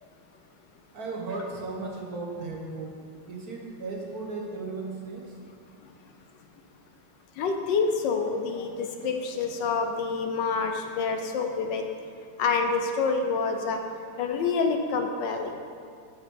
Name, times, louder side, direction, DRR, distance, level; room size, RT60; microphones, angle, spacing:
voice 1, 0.9-2.9 3.2-5.4, right 3 dB, 45° right, -2 dB, 1.6 m, -36 dB
voice 2, 7.4-11.8 12.4-13.8 14.2-15.6, left 4 dB, 70° left, 4 dB, 1.2 m, -27 dB
8.5 x 6.2 x 6.3 m, 2.3 s
omnidirectional pair, 2.4 m